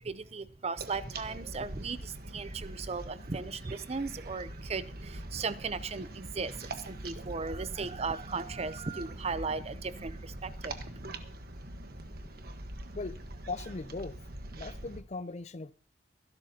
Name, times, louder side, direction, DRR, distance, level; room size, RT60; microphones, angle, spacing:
voice 1, 0.0-10.8, right 4 dB, 35° right, 0.6 m, -37 dB
sound 1, 0.8-15.0, right 1 dB, 60° right, 1.4 m, -43 dB
voice 2, 13.5-14.2 14.5-15.7, left 3 dB, 40° left, 0.5 m, -39 dB
23.5 x 12.0 x 2.9 m
head